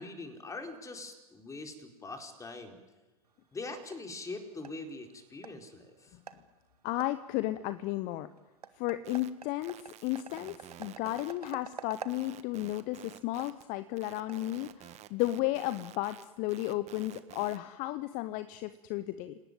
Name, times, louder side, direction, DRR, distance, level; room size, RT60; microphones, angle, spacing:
voice 1, 0.0-2.8 3.5-6.2, left 3 dB, 15° left, 4 dB, 4.4 m, -43 dB
sound 1, 3.2-15.1, right 6 dB, 80° right, 1.4 m, -51 dB
voice 2, 6.8-8.3 8.8-19.4, left 16 dB, 45° left, 13 dB, 1.0 m, -34 dB
sound 2, 9.0-9.3 9.6-13.6 14.0-17.6, right 12 dB, 35° right, 1.5 m, -50 dB
28.5 x 18.5 x 9.3 m, 1.2 s
figure-of-eight pair, 85°, 20 cm